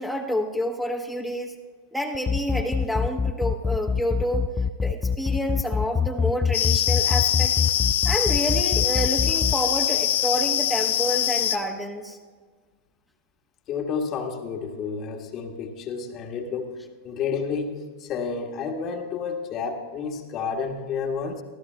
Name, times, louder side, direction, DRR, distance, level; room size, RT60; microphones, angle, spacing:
voice 1, 0.0-1.5 1.9-4.4 4.8-7.5 8.0-12.2, equal, ahead, 1 dB, 1.3 m, -28 dB
sound 1, 2.1-9.5, left 5 dB, 15° left, 0.3 m, -24 dB
sound 2, 6.5-11.6, left 11 dB, 60° left, 0.8 m, -23 dB
voice 2, 13.7-16.8 17.0-17.7 18.0-21.4, left 5 dB, 35° left, 4 dB, 1.5 m, -30 dB
24.5 x 15.0 x 2.3 m, 1.5 s
figure-of-eight pair, 90°, 0 cm